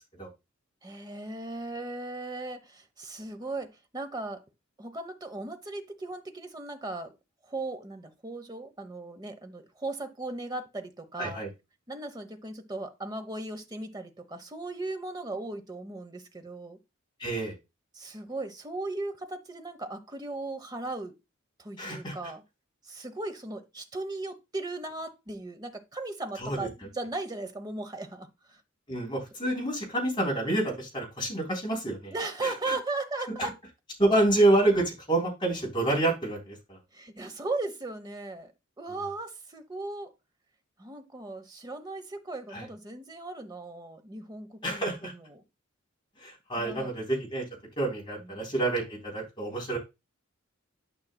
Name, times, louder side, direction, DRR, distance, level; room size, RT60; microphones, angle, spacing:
voice 1, 0.8-4.4 4.8-7.1 7.4-11.4 11.9-16.8 17.9-21.1 21.6-22.4 22.8-28.6 32.1-33.6 36.9-38.5 38.8-40.1 40.8-45.4 46.6-46.9 48.2-48.3, right 2 dB, 20° right, 0.9 m, -37 dB
voice 2, 11.2-11.5 17.2-17.5 21.8-22.1 26.4-26.7 28.9-32.1 32.4-32.8 33.4-33.5 34.0-36.8 38.9-39.0 42.5-42.7 44.6-45.1 46.2-47.4 47.8-49.8, right 2 dB, 25° left, 3.6 m, -28 dB
11.5 x 5.6 x 2.2 m
head